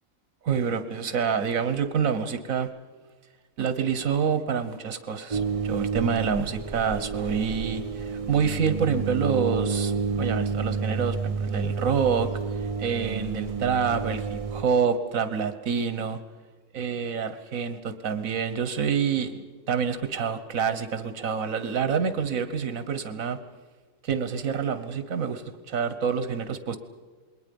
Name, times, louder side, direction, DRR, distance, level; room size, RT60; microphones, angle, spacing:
voice 1, 0.4-2.7 3.6-12.3 12.8-16.2 16.7-19.3 19.7-23.4 24.0-26.8, right 6 dB, 80° right, 11 dB, 1.5 m, -27 dB
sound 1, 5.3-14.6, right 5 dB, 35° right, 0.6 m, -30 dB
27.5 x 21.5 x 5.3 m, 1.4 s
omnidirectional pair, 1.4 m